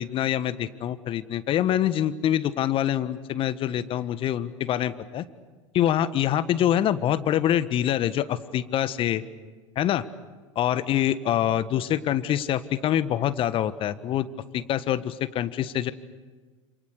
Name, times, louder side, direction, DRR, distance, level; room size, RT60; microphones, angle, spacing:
voice 1, 0.0-5.2 5.7-9.2 9.7-10.0 10.5-14.3 14.5-15.9, left 11 dB, 35° left, 14 dB, 1.4 m, -25 dB
29.0 x 27.5 x 6.7 m, 1.4 s
figure-of-eight pair, 85°, 16 cm